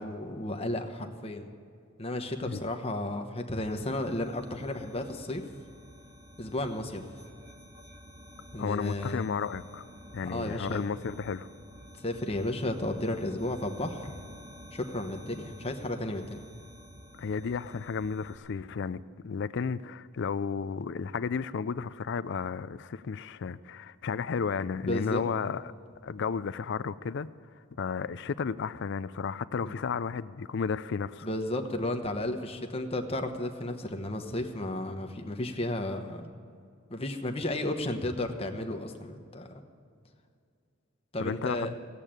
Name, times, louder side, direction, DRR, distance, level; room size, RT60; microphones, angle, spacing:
voice 1, 0.0-1.5 2.0-5.4 6.4-7.0 8.5-9.3 10.2-10.8 12.0-14.2 14.7-16.4 24.9-25.2 29.6-29.8 31.2-36.3 36.9-39.6 41.1-41.7, left 1 dB, 25° left, 5 dB, 1.0 m, -33 dB
sound 1, 3.7-18.4, equal, 45° right, 2.4 m, -51 dB
voice 2, 8.6-9.8 10.1-11.5 17.2-25.6 26.0-27.3 27.8-31.3 41.2-41.7, left 5 dB, 55° left, 15 dB, 0.4 m, -33 dB
15.5 x 8.2 x 8.9 m, 2.3 s
head